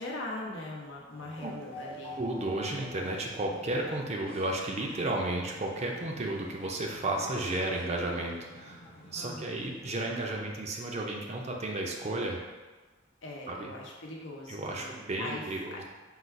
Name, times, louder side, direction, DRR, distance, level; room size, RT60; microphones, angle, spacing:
voice 1, 0.0-2.2 9.1-9.6 13.2-15.8, left 2 dB, 75° left, -2 dB, 0.8 m, -41 dB
sound 1, 1.1-10.1, left 1 dB, 30° left, 0.7 m, -49 dB
voice 2, 2.2-8.8 9.1-12.4 13.5-13.7 14.5-15.8, right 2 dB, 35° right, 0 dB, 0.5 m, -33 dB
3.9 x 2.4 x 4.5 m, 1.3 s
head